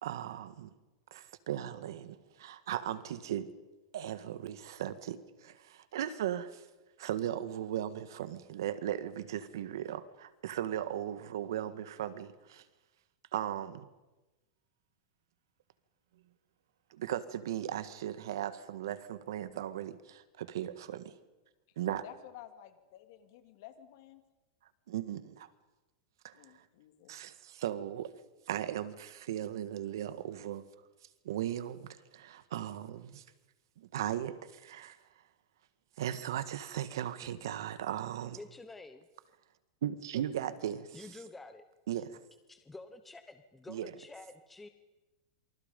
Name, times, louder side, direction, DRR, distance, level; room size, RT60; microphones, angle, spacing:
voice 1, 0.0-0.7 1.1-3.5 3.9-6.6 7.0-12.6 13.3-13.9 16.9-21.1 21.8-22.0 24.9-25.5 26.2-26.6 27.1-28.1 28.5-30.6 31.3-33.2 33.8-35.0 36.0-38.4 39.8-41.1 41.9-42.2 43.7-43.9, right 11 dB, 80° right, 1.7 m, -37 dB
voice 2, 22.0-24.2 26.3-27.1, left 12 dB, 55° left, 2.8 m, -52 dB
voice 3, 38.3-39.1 40.9-41.6 42.5-44.7, left 2 dB, 5° left, 0.9 m, -49 dB
27.0 x 25.5 x 5.4 m
supercardioid pair, 160°, 2 cm